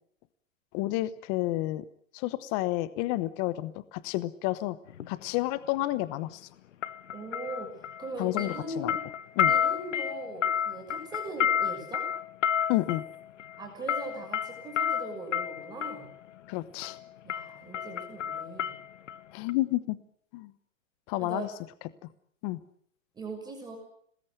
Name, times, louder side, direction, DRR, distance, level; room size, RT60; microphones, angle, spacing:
voice 1, 0.7-1.9 2.1-4.8 5.1-6.5 8.2-8.9 9.4-9.5 12.7-13.0 16.5-17.0 19.3-20.0 20.3-20.5 21.1-21.5 22.4-22.6, left 17 dB, 25° left, 16 dB, 1.0 m, -30 dB
sound 1, 4.9-5.1 6.8-8.1 8.4-16.1 16.8-17.0 17.3-19.2 19.5-19.6, left 9 dB, 65° left, 1.5 m, -30 dB
voice 2, 7.1-7.7 8.0-9.0 9.4-12.0 13.6-16.1 17.2-18.8 21.2-21.5 23.1-23.8, right 2 dB, 10° right, 2 dB, 6.4 m, -40 dB
27.0 x 20.5 x 8.1 m, 0.65 s
hypercardioid pair, 150°, 39 cm